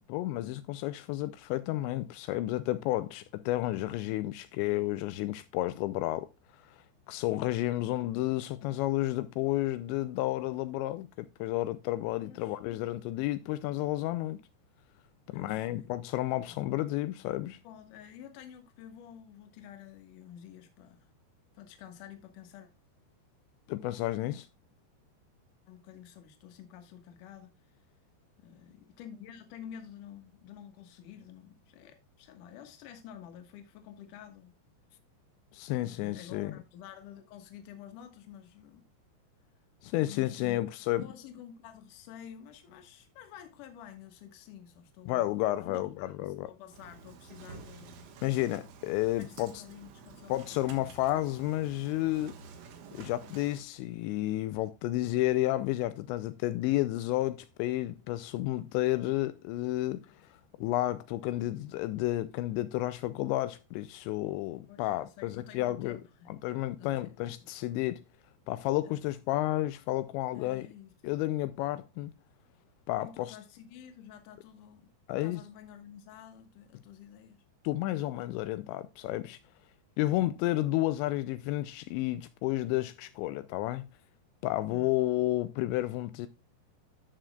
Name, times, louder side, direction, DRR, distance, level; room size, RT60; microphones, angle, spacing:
voice 1, 0.1-6.3 6.7-14.4 15.3-17.6 23.7-24.5 35.5-36.5 39.8-41.0 45.1-46.5 48.2-49.6 50.3-52.4 52.9-66.0 66.4-68.0 68.5-70.7 71.0-72.1 72.9-73.4 75.1-75.4 77.6-79.4 80.0-83.9 84.4-86.3, left 16 dB, 85° left, 2.8 m, -31 dB
voice 2, 12.2-12.6 15.3-15.9 16.5-16.6 17.6-21.1 21.5-22.7 25.7-27.8 28.4-34.5 35.8-38.8 40.1-40.7 41.0-45.8 46.2-48.2 49.3-50.9 64.7-66.3 66.8-67.5 68.9-69.0 70.3-70.9 73.0-74.9 75.2-77.4 84.7-84.9, left 9 dB, 65° left, 2.3 m, -50 dB
Engine starting, 46.7-53.6, right 5 dB, 85° right, 3.8 m, -50 dB
14.0 x 6.2 x 2.2 m
omnidirectional pair, 5.2 m